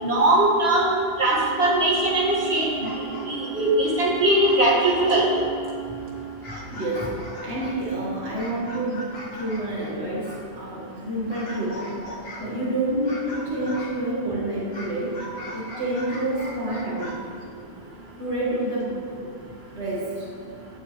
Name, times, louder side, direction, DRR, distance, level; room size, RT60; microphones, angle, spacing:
voice 1, 0.0-2.7 3.3-5.3, right 1 dB, 70° right, -5 dB, 2.4 m, -20 dB
Wind instrument woodwind instrument, 1.3-6.4, right 10 dB, 25° left, 1.7 m, -36 dB
sound 1, 2.7-3.6 4.1-4.2 4.4-5.7 6.2-10.5 11.3-12.6 13.0-14.0 14.7-17.2, left 1 dB, 65° left, 2.0 m, -38 dB
voice 2, 6.7-12.0 12.4-15.2 15.5-17.3 18.2-19.1 19.7-20.3 20.6-20.7, right 1 dB, 85° right, -6 dB, 2.3 m, -28 dB
16.5 x 9.6 x 3.3 m, 2.4 s
omnidirectional pair, 1.1 m